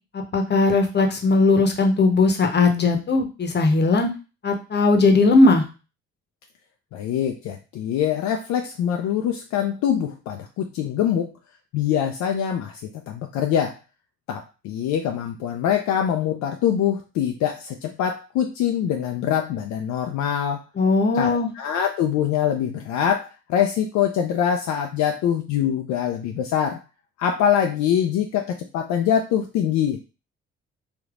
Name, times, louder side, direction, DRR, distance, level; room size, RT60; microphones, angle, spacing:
voice 1, 0.1-4.1 4.4-5.6 20.8-21.5, left 3 dB, 35° left, 5 dB, 0.9 m, -18 dB
voice 2, 6.9-11.3 11.7-13.7 14.3-20.6 21.1-26.8 27.2-30.0, left 9 dB, 60° left, 3 dB, 0.5 m, -24 dB
3.3 x 2.9 x 2.4 m, 0.31 s
hypercardioid pair, 45°, 32 cm